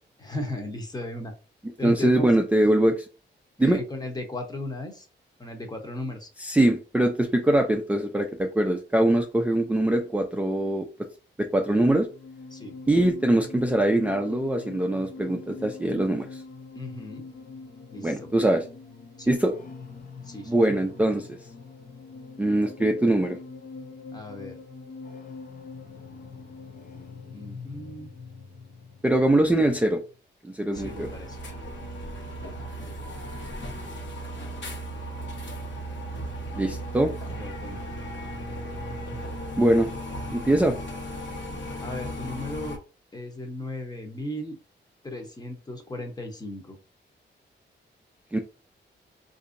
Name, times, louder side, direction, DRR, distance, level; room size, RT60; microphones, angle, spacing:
voice 1, 0.2-1.3 1.8-2.3 3.6-5.1 5.4-6.3 12.5-12.8 16.7-17.2 17.9-18.3 19.2-19.3 20.2-20.7 24.1-24.6 27.3-28.1 30.7-31.4 37.3-37.9 41.8-42.8 43.1-44.6 45.0-46.8, left 1 dB, 20° left, 4 dB, 0.8 m, -36 dB
voice 2, 1.8-3.1 3.6-3.8 6.4-10.9 11.4-12.1 12.9-16.4 18.0-18.7 19.3-19.5 20.5-21.4 22.4-23.4 29.0-30.0 30.4-31.1 36.5-37.1 39.6-39.9 40.3-40.8 48.3-48.4, right 1 dB, 5° right, 3 dB, 0.4 m, -22 dB
sound 1, 11.6-30.1, left 4 dB, 50° left, 0.6 m, -43 dB
sound 2, 30.7-42.8, equal, 75° left, 1.2 m, -36 dB
4.0 x 2.6 x 2.5 m, 0.33 s
wide cardioid pair, 145°, 19 cm